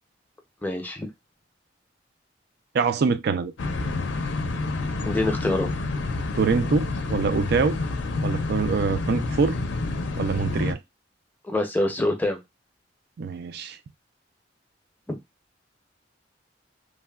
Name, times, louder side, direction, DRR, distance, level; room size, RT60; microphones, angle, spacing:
voice 1, 0.6-1.1 5.1-5.7 11.4-12.4, left 2 dB, 10° left, 0.6 m, -25 dB
voice 2, 2.7-3.5 6.4-7.8 8.2-9.6 10.2-10.8 13.2-13.8, right 5 dB, 60° right, 0.3 m, -24 dB
sound 1, 3.6-10.7, left 3 dB, 70° left, 0.5 m, -28 dB
3.2 x 2.1 x 2.2 m
head